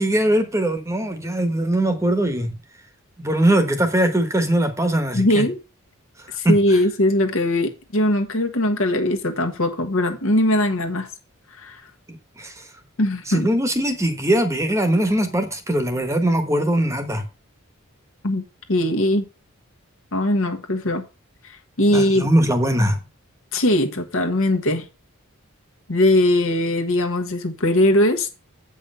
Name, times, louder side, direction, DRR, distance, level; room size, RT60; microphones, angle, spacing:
voice 1, 0.0-2.5 3.2-5.5 6.4-6.8 12.4-12.6 13.3-17.2 21.9-23.0, right 1 dB, 15° right, 1.2 m, -21 dB
voice 2, 5.1-5.6 6.4-11.1 11.5-11.8 13.0-13.5 18.2-19.2 20.1-21.0 21.4-22.3 23.5-24.8 25.9-28.3, left 1 dB, 65° left, 1.4 m, -20 dB
8.3 x 5.5 x 5.4 m
head